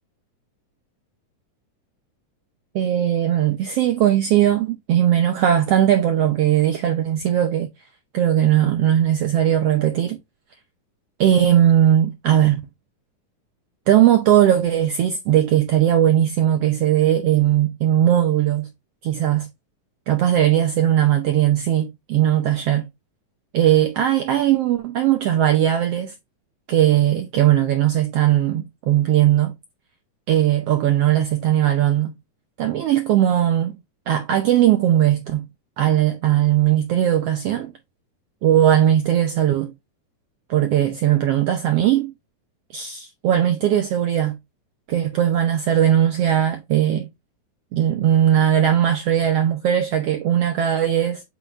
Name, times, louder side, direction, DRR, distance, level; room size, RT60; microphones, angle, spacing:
voice 1, 2.7-7.7 8.1-10.2 11.2-12.6 13.9-18.7 19.0-19.5 20.1-22.9 23.5-26.1 26.7-29.5 30.3-32.1 32.6-33.8 34.1-35.4 35.8-37.7 38.4-39.7 40.5-42.1 42.7-44.4 44.9-47.1 47.7-51.2, right 11 dB, 80° right, 1.3 m, -18 dB
8.1 x 5.0 x 2.4 m
omnidirectional pair, 3.7 m